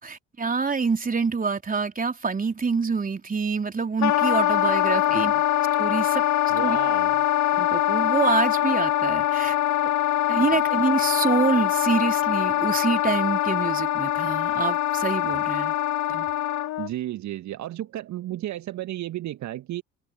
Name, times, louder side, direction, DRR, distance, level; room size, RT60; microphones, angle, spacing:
voice 1, 0.0-5.3 5.8-6.2 6.6-6.8 7.5-9.6 10.3-15.8 16.1-16.3, right 4 dB, 20° right, 3.7 m, -26 dB
Wind instrument woodwind instrument, 4.0-16.9, left 14 dB, 50° left, 1.8 m, -23 dB
voice 2, 5.0-5.4 6.5-7.2 16.8-19.8, right 13 dB, 50° right, 1.9 m, -33 dB
figure-of-eight pair, 50°, 37 cm